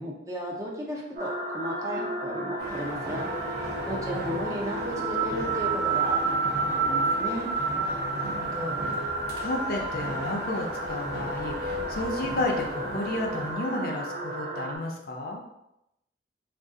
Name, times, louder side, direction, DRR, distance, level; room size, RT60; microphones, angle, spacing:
voice 1, 0.0-3.3 3.9-7.5, equal, 20° right, -2 dB, 0.5 m, -34 dB
sound 1, 1.2-14.8, right 3 dB, 40° right, 1.1 m, -31 dB
sound 2, 2.6-13.6, right 1 dB, 60° right, 0.6 m, -39 dB
voice 2, 3.8-4.4 7.8-15.4, left 1 dB, 55° left, 0 dB, 0.5 m, -33 dB
2.6 x 2.4 x 3.6 m, 0.85 s
head